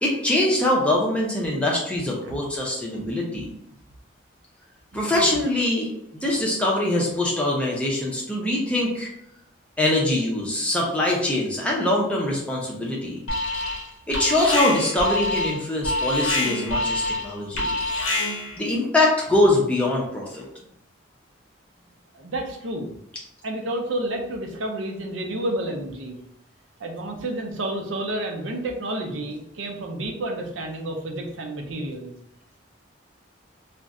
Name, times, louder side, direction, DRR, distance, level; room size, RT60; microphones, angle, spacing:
voice 1, 0.0-3.5 4.9-9.1 9.8-13.2 14.1-17.7 18.6-20.5, left 1 dB, 5° left, -3 dB, 0.5 m, -23 dB
voice 2, 2.9-3.4 22.1-22.9 23.4-26.2 26.8-32.1, right 1 dB, 70° right, 2 dB, 0.6 m, -30 dB
Alarm, 13.3-13.9 14.1-18.6, left 2 dB, 80° left, 0.7 m, -26 dB
2.5 x 2.1 x 3.6 m, 0.77 s
head